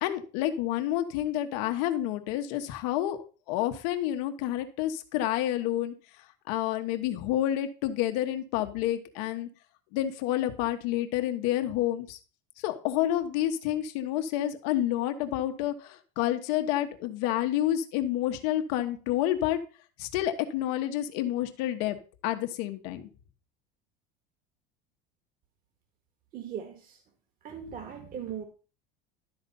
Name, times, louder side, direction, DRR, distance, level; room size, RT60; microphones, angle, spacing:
voice 1, 0.0-3.2 3.5-5.9 6.5-9.5 9.9-12.2 12.6-19.6 20.0-22.0 22.2-23.1, left 12 dB, 75° left, 7 dB, 1.4 m, -29 dB
voice 2, 26.3-27.0 27.4-28.4, right 8 dB, 45° right, 5 dB, 1.7 m, -39 dB
12.0 x 4.1 x 5.5 m, 0.36 s
supercardioid pair, 130°, 21 cm